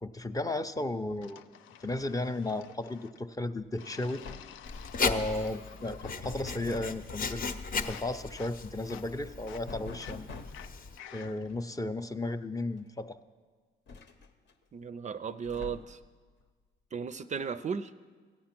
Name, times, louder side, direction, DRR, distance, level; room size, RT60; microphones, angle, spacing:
voice 1, 0.0-1.5 1.8-4.2 5.0-7.4 7.8-10.3 11.1-13.2, left 2 dB, 15° left, 9 dB, 0.5 m, -34 dB
sound 1, 1.2-3.3 3.8-6.2 6.5-7.0 7.3-11.6, left 10 dB, 90° left, 0.5 m, -51 dB
sound 2, 3.6-3.8 4.0-4.7 6.0-7.0 9.7-10.7 12.3-12.4 12.8-12.9 13.9-14.5 15.4-16.1, left 3 dB, 65° left, 0.9 m, -44 dB
Writing, 4.6-11.0, left 4 dB, 45° left, 0.8 m, -36 dB
voice 2, 14.7-16.0 16.9-17.9, right 6 dB, 35° right, 12 dB, 0.4 m, -35 dB
14.5 x 8.6 x 5.9 m, 1.5 s
cardioid pair, 90°, 20 cm